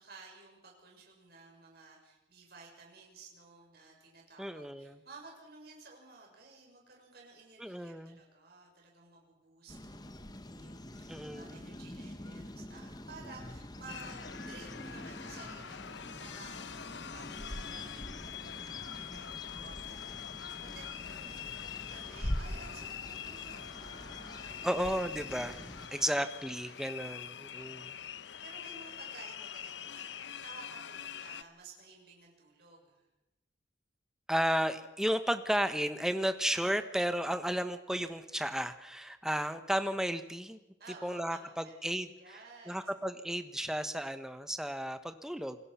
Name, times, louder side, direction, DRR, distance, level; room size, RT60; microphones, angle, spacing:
voice 1, 0.0-24.9 25.8-26.3 27.6-27.7 28.4-33.1 40.8-42.8, right 3 dB, 55° right, -1 dB, 6.6 m, -54 dB
voice 2, 4.4-5.0 7.6-8.2 11.1-11.5 24.6-25.6 25.9-27.9 34.3-40.6 41.0-42.1 42.7-45.6, equal, 5° right, 9 dB, 1.2 m, -33 dB
sound 1, 9.7-25.9, left 1 dB, 20° left, 1.1 m, -44 dB
sound 2, 13.9-31.4, left 9 dB, 70° left, 0.8 m, -45 dB
28.0 x 20.5 x 5.8 m, 0.94 s
head